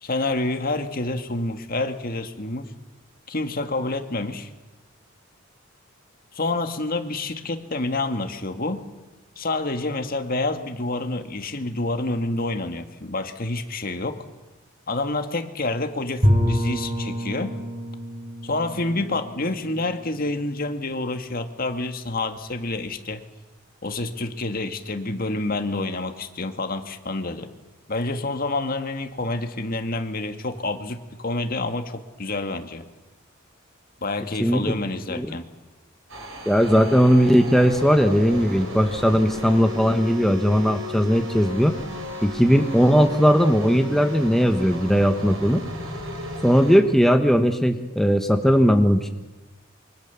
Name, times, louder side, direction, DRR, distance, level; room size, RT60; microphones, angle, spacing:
voice 1, 0.0-2.7 3.3-4.5 6.3-8.8 9.4-14.2 14.9-17.5 18.4-23.2 23.8-27.5 27.9-32.9 34.0-35.5, left 2 dB, 45° left, 7 dB, 1.9 m, -28 dB
Bowed string instrument, 16.2-21.0, equal, 30° right, 5.0 m, -27 dB
sound 1, 36.1-46.8, left 1 dB, 75° right, 6.4 m, -35 dB
voice 2, 36.5-41.7 42.2-45.6 46.4-49.1, equal, ahead, 5 dB, 1.2 m, -18 dB
27.5 x 24.5 x 7.1 m, 1.1 s
head